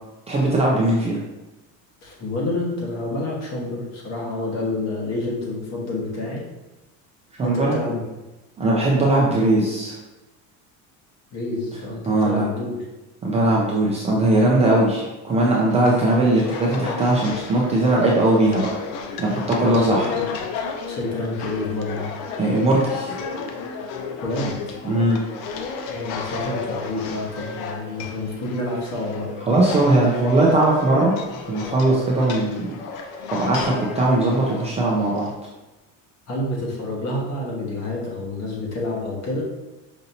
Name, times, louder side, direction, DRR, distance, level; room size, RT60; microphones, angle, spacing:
voice 1, 0.3-1.2 7.4-7.8 8.6-10.0 12.1-12.5 13.2-18.7 19.2-20.1 22.4-23.1 24.8-25.2 29.5-31.1 31.5-32.7 33.3-35.3, right 2 dB, 15° right, -4 dB, 0.4 m, -19 dB
voice 2, 2.0-6.4 7.4-8.0 11.3-12.8 19.6-20.3 20.9-22.1 24.2-24.8 25.9-29.3 36.3-39.4, left 2 dB, 45° left, -3 dB, 1.3 m, -28 dB
sound 1, 15.7-35.3, left 5 dB, 80° left, 0.7 m, -33 dB
5.2 x 2.7 x 2.7 m, 1.1 s
cardioid pair, 140°, 39 cm